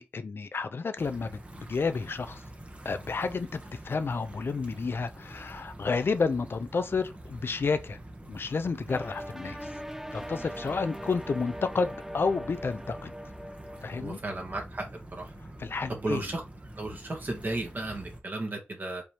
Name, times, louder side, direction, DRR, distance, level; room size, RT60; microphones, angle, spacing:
voice 1, 0.0-2.4 2.8-3.6 3.8-8.0 8.3-9.7 10.1-13.1 13.8-14.2 15.4-16.3, left 4 dB, 65° left, 0.5 m, -31 dB
sound 1, 1.0-18.2, right 1 dB, 30° right, 1.0 m, -46 dB
sound 2, 8.9-14.0, equal, 10° right, 0.6 m, -41 dB
voice 2, 14.0-14.9 15.2-15.3 15.9-16.4 16.8-19.0, right 2 dB, 50° right, 1.7 m, -34 dB
5.1 x 3.4 x 2.9 m
wide cardioid pair, 70°, 4 cm